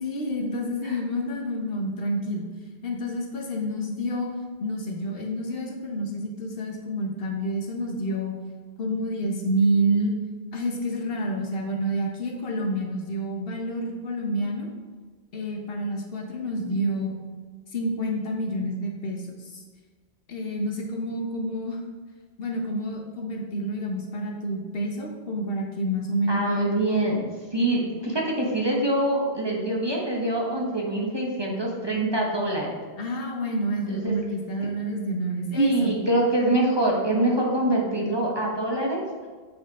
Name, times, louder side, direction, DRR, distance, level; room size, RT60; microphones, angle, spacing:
voice 1, 0.0-2.4 2.8-8.3 8.8-10.2 10.5-14.7 15.3-17.2 17.7-19.6 20.3-21.8 22.4-26.6 33.0-36.0, equal, 65° left, 1 dB, 1.1 m, -28 dB
voice 2, 26.3-27.3 27.5-32.8 33.9-34.1 35.6-39.0, right 1 dB, 25° right, -2 dB, 1.0 m, -24 dB
7.6 x 4.4 x 3.6 m, 1.5 s
omnidirectional pair, 1.1 m